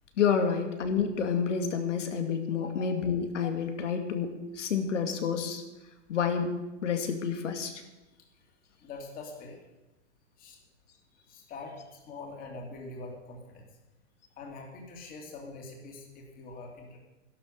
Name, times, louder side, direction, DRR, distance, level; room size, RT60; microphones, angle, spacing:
voice 1, 0.2-5.6 6.1-6.5 6.8-7.8, left 6 dB, 90° left, 6 dB, 2.4 m, -29 dB
voice 2, 8.8-9.6 10.4-10.6 11.1-13.7 14.4-17.0, left 3 dB, 25° left, 1 dB, 2.8 m, -44 dB
12.5 x 12.0 x 6.7 m, 1.0 s
supercardioid pair, 155°, 35 cm